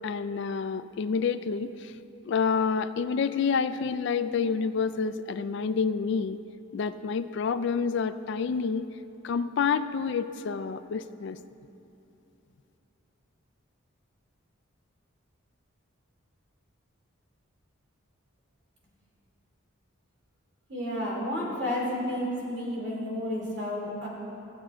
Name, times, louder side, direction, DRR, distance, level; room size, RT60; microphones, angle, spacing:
voice 1, 0.0-1.9 2.3-6.4 6.7-8.9 9.2-11.4, left 5 dB, 55° left, 13 dB, 0.3 m, -28 dB
voice 2, 20.7-24.1, left 1 dB, 55° right, -4 dB, 2.8 m, -31 dB
15.0 x 7.8 x 4.3 m, 2.8 s
head